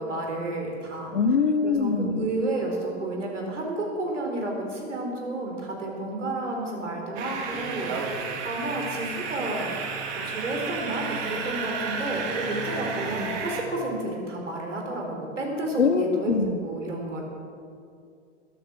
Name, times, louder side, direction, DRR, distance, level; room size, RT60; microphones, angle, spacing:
voice 1, 0.0-1.1 1.6-8.1 8.4-9.7 10.1-16.3 16.6-17.2, right 2 dB, 80° right, 0 dB, 4.3 m, -31 dB
voice 2, 1.1-2.2 15.8-16.6, left 5 dB, 80° left, 11 dB, 1.1 m, -23 dB
sound 1, 7.2-13.6, right 4 dB, 40° right, 2.5 m, -32 dB
21.0 x 8.8 x 6.2 m, 2.3 s
hypercardioid pair, 105°, 36 cm